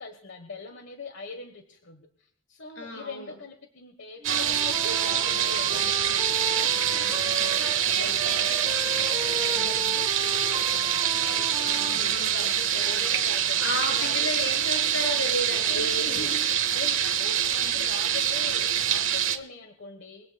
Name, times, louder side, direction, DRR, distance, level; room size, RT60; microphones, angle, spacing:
voice 1, 0.0-5.9 6.3-14.3 15.7-16.3 16.7-20.3, left 4 dB, 60° left, 6 dB, 1.4 m, -42 dB
voice 2, 2.8-3.3 6.7-7.5 7.9-8.5 9.6-9.9 11.6-12.9 13.6-16.4 17.5-17.8, left 1 dB, 85° left, 2 dB, 7.2 m, -34 dB
Wind instrument woodwind instrument, 4.2-7.9 8.1-12.0, right 2 dB, 20° right, 1.7 m, -36 dB
sound 1, 4.2-19.4, right 9 dB, 65° right, 1.6 m, -25 dB
24.0 x 17.5 x 2.4 m, 0.63 s
head